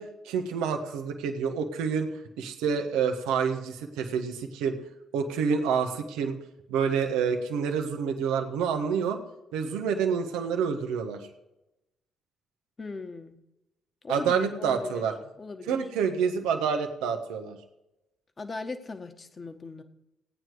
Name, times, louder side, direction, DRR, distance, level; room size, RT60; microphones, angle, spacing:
voice 1, 0.0-2.1 2.4-4.8 5.1-6.4 6.7-9.2 9.5-11.2 14.1-15.1 15.7-17.6, right 6 dB, 80° right, 5 dB, 1.5 m, -28 dB
voice 2, 12.8-13.4 14.0-15.1 15.4-15.8 18.4-19.8, left 3 dB, 35° left, 7 dB, 1.7 m, -38 dB
17.0 x 9.3 x 4.9 m, 0.93 s
hypercardioid pair, 50°, 0 cm